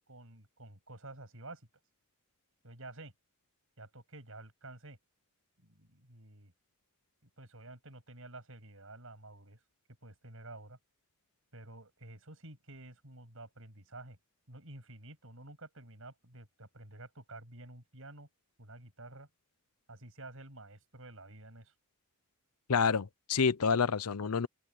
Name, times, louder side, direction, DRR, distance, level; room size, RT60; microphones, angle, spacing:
voice 1, 0.1-1.7 2.6-3.1 3.8-5.0 5.6-6.5 7.4-9.6 10.0-10.8 11.5-14.2 14.5-18.3 18.6-19.3 19.9-21.7, right 2 dB, 65° right, 8.0 m, -50 dB
voice 2, 22.7-24.5, left 5 dB, 85° left, 0.7 m, -28 dB
open air
head